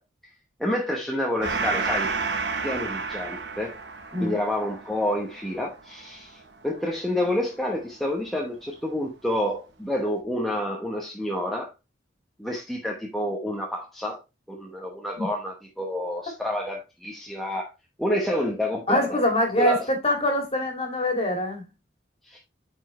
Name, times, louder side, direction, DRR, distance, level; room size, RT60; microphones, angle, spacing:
voice 1, 0.6-2.1 2.6-3.7 4.2-6.4 6.6-11.7 12.4-14.2 14.5-17.7 18.0-19.2 19.6-19.9 22.3-22.4, left 1 dB, ahead, 0.9 m, -28 dB
Gong, 1.4-8.4, right 4 dB, 60° right, 1.1 m, -32 dB
voice 2, 18.9-21.6, left 1 dB, 30° left, 2.2 m, -24 dB
8.6 x 4.4 x 3.1 m
head